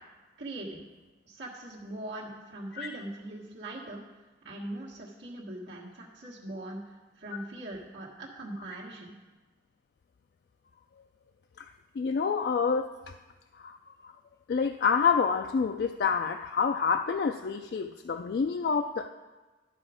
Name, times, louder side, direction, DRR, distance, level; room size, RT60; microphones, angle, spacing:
voice 1, 0.4-0.8 1.2-4.0 4.4-6.8 7.2-9.1, right 1 dB, 85° right, -5 dB, 1.5 m, -41 dB
voice 2, 12.0-12.9 13.6-14.1 14.5-19.1, left 5 dB, 60° left, 6 dB, 0.3 m, -28 dB
11.5 x 6.0 x 4.9 m, 1.2 s
head